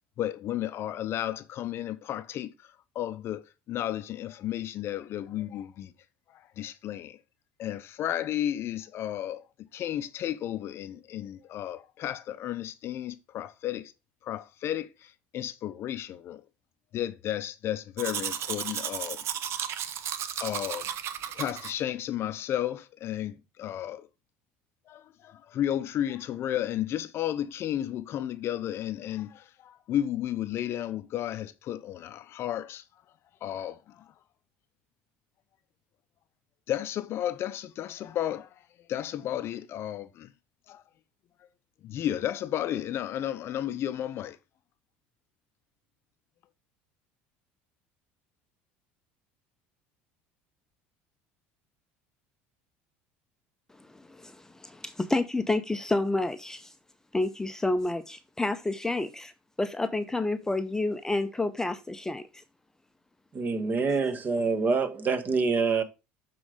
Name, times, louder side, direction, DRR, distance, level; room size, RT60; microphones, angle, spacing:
voice 1, 0.2-2.7 2.9-5.9 6.3-7.2 7.6-9.4 9.7-13.9 14.2-16.4 16.9-19.2 20.4-20.9 21.3-24.1 24.9-32.8 33.4-34.0 36.7-38.5 38.9-40.3 40.7-40.8 41.8-44.4, left 11 dB, 50° left, 0.5 m, -33 dB
Domestic sounds home sounds, 18.0-21.7, right 9 dB, 55° right, 0.7 m, -34 dB
voice 2, 53.8-56.7 57.1-59.3 59.6-62.4, left 2 dB, 10° left, 0.6 m, -29 dB
voice 3, 63.3-65.8, right 4 dB, 35° right, 1.2 m, -26 dB
7.1 x 3.8 x 4.9 m
supercardioid pair, 90°, 5 cm